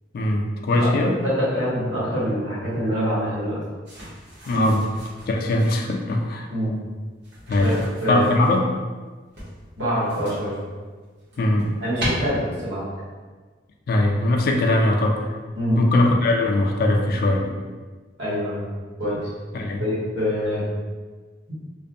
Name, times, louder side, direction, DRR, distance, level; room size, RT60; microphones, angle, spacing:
voice 1, 0.1-1.2 4.5-4.8 5.3-6.5 7.5-7.8 8.1-8.6 11.4-11.7 13.9-15.3 15.8-17.5 19.5-19.8, left 1 dB, 55° left, 2 dB, 0.3 m, -21 dB
voice 2, 0.7-3.6 4.5-4.7 6.5-6.8 7.6-8.3 9.7-10.6 11.8-12.8 15.5-15.8 18.2-18.7 19.0-19.3 19.8-20.6, equal, 80° right, -9 dB, 1.3 m, -25 dB
sound 1, 3.8-5.8 7.2-8.6 9.3-10.6 11.0-12.1, right 1 dB, 65° right, 1.0 m, -37 dB
2.5 x 2.2 x 2.6 m, 1.4 s
head